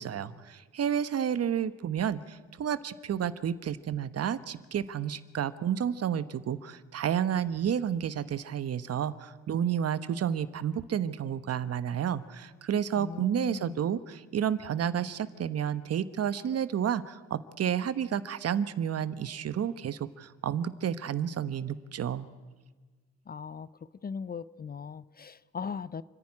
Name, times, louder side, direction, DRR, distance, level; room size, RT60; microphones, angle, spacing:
voice 1, 0.0-22.3, right 9 dB, 55° right, 14 dB, 1.0 m, -31 dB
voice 2, 13.0-13.8 23.3-23.7 24.0-26.0, left 6 dB, 30° left, 18 dB, 0.6 m, -38 dB
28.5 x 10.5 x 9.8 m, 1.4 s
cardioid pair, 90°, 30 cm